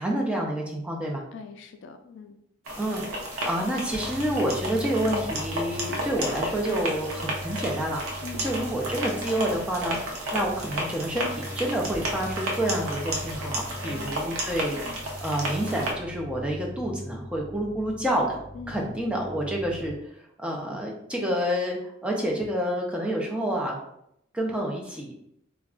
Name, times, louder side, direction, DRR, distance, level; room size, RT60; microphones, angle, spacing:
voice 1, 0.0-1.2 2.8-3.1 3.4-8.0 8.4-10.0 10.3-18.4 18.7-19.9 20.4-23.8 24.3-25.2, right 1 dB, 5° right, -1 dB, 0.4 m, -28 dB
voice 2, 1.3-2.4 8.2-8.4 13.8-14.4 14.8-15.0 18.5-19.0, left 5 dB, 60° left, 7 dB, 0.3 m, -42 dB
sound 1, 2.7-15.9, right 1 dB, 85° right, 0.7 m, -33 dB
sound 2, 3.9-19.9, equal, 65° right, 1.1 m, -40 dB
2.3 x 2.2 x 3.6 m, 0.74 s
head